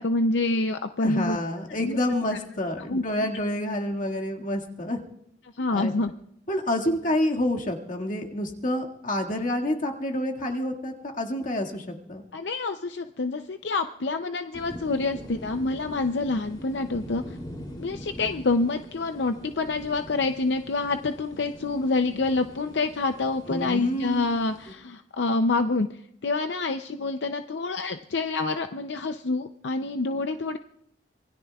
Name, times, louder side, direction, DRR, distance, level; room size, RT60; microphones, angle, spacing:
voice 1, 0.0-1.4 1.8-2.0 2.8-3.3 5.6-6.1 12.3-17.4 17.8-25.9 26.2-30.6, left 3 dB, 75° left, 8 dB, 0.6 m, -27 dB
voice 2, 1.0-5.0 5.7-5.9 6.5-12.2 23.5-24.3, left 1 dB, 50° left, 1 dB, 2.0 m, -28 dB
sound 1, 14.5-24.7, equal, 25° left, 3.1 m, -43 dB
26.0 x 20.5 x 2.4 m, 0.75 s
head